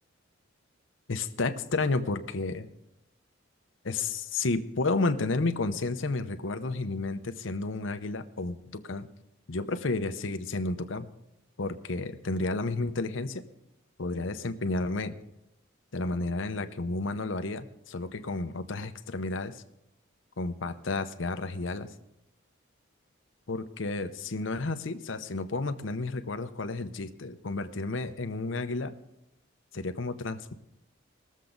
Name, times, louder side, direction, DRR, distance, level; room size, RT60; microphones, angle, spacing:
voice 1, 1.1-2.7 3.8-9.1 9.5-11.1 11.6-13.4 14.0-15.2 15.9-19.6 20.4-21.9 23.5-28.9 29.7-30.5, left 3 dB, 65° left, 9 dB, 0.8 m, -31 dB
20.0 x 7.4 x 3.9 m, 0.86 s
head